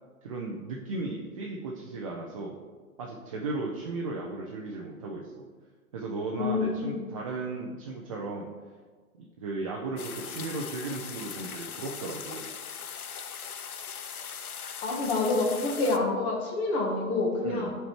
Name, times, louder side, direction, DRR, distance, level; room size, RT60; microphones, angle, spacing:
voice 1, 0.2-2.6 3.0-5.5 5.9-8.5 9.2-12.5 17.4-17.7, right 3 dB, 25° right, -1 dB, 0.3 m, -35 dB
voice 2, 6.3-7.1 14.8-17.7, left 3 dB, 25° left, 0 dB, 1.2 m, -28 dB
sound 1, 10.0-16.0, left 7 dB, 85° left, 0.6 m, -40 dB
8.4 x 4.4 x 3.0 m, 1.5 s
hypercardioid pair, 120°, 43 cm